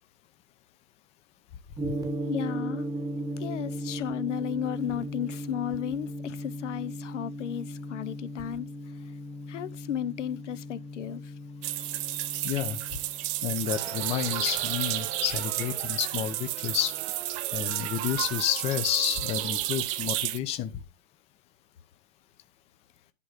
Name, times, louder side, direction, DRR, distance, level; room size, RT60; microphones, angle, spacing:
Gong, 1.8-15.9, equal, 10° right, 1.1 m, -37 dB
voice 1, 2.3-2.9 3.4-8.7 9.5-11.3, left 10 dB, 65° left, 0.9 m, -34 dB
sound 1, 11.6-20.4, right 16 dB, 25° right, 0.5 m, -32 dB
voice 2, 12.4-12.8 13.4-17.0 17.5-20.7, left 11 dB, 15° left, 0.6 m, -30 dB
sound 2, 13.6-20.8, right 12 dB, 55° right, 1.1 m, -42 dB
11.0 x 3.8 x 6.6 m
hypercardioid pair, 140°, 39 cm